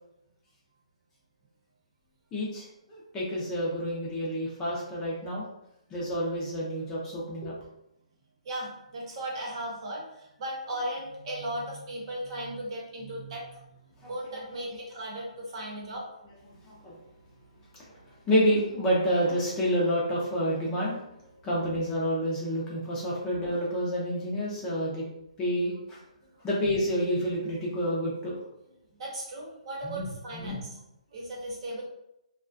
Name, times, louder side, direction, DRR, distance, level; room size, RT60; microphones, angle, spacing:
voice 1, 2.3-5.4 5.9-7.5 14.0-14.4 16.6-16.9 18.3-21.0 21.4-25.0 25.4-26.0 26.4-28.4 29.8-30.6, equal, 15° left, -6 dB, 0.5 m, -29 dB
voice 2, 8.4-13.6 14.1-16.1 29.0-30.8 31.1-31.8, right 1 dB, 45° right, -3 dB, 0.9 m, -36 dB
2.3 x 2.2 x 2.5 m, 0.82 s
hypercardioid pair, 155°, 4 cm